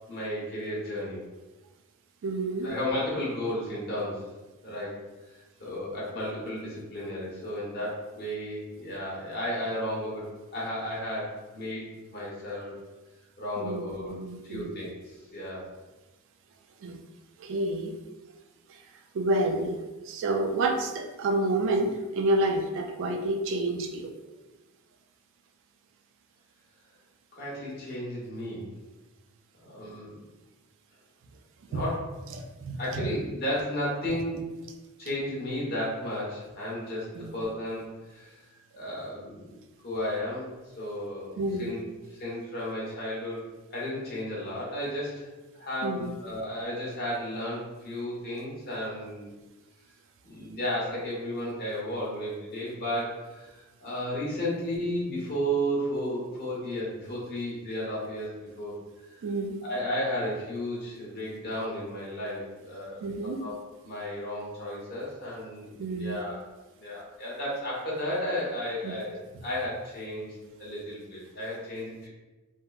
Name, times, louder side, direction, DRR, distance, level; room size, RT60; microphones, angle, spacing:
voice 1, 0.1-1.2 2.6-4.3 4.6-5.0 5.6-10.3 10.5-12.7 13.4-14.2 14.5-15.6 27.3-28.7 29.6-30.2 31.7-32.1 32.8-34.4 35.0-38.3 38.7-39.5 39.8-41.8 42.1-43.4 43.7-45.2 45.5-49.3 50.3-58.7 59.1-59.2 59.6-63.0 63.4-66.4 66.8-70.3 70.6-72.1, equal, 45° left, -6 dB, 0.9 m, -33 dB
voice 2, 2.2-2.7 13.6-13.8 14.1-14.7 16.8-17.0 17.4-18.0 18.7-18.8 19.1-19.8 20.0-24.1 31.7-31.8 32.4-33.1 37.2-37.3 41.4-41.8 45.8-46.1 59.2-59.6 63.0-63.5 65.8-66.2 68.8-68.9, right 2 dB, 55° right, 4 dB, 0.3 m, -29 dB
3.5 x 2.1 x 2.3 m, 1.2 s
head